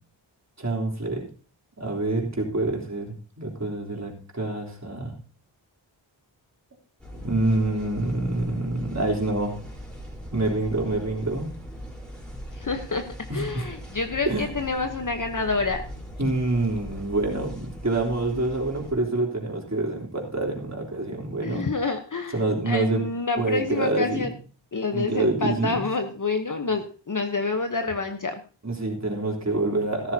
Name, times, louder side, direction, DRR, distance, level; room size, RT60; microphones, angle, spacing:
voice 1, 0.6-1.2 1.8-5.2 7.1-9.6 10.3-11.5 13.3-13.7 14.3-14.5 16.2-21.7 22.3-23.0 23.4-24.3 24.9-25.9 28.6-30.1, right 2 dB, 35° right, 0 dB, 3.5 m, -26 dB
sound 1, 7.0-18.9, equal, ahead, 4.0 m, -40 dB
voice 2, 12.5-13.0 13.3-15.8 16.2-16.3 21.4-22.4 22.7-24.3 24.7-28.4, left 3 dB, 40° left, 5 dB, 1.1 m, -28 dB
14.0 x 13.0 x 2.8 m, 0.37 s
wide cardioid pair, 65°, 46 cm